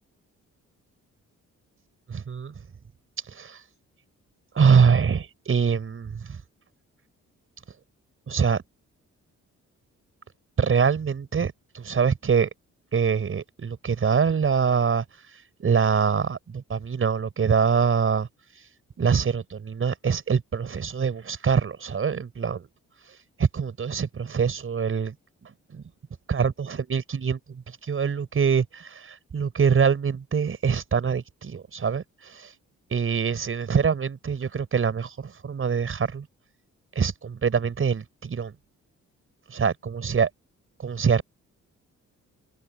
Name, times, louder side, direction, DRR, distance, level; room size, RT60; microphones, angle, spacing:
voice 1, 2.1-2.5 3.3-3.6 4.5-6.4 8.3-8.6 10.6-12.5 12.9-15.1 15.6-18.3 19.0-22.7 23.4-25.1 25.4-25.8 26.3-32.5 32.9-36.3 37.0-38.5 39.5-40.3 40.8-41.2, right 6 dB, 45° right, 5.7 m, -24 dB
open air
cardioid pair, 105°, 29 cm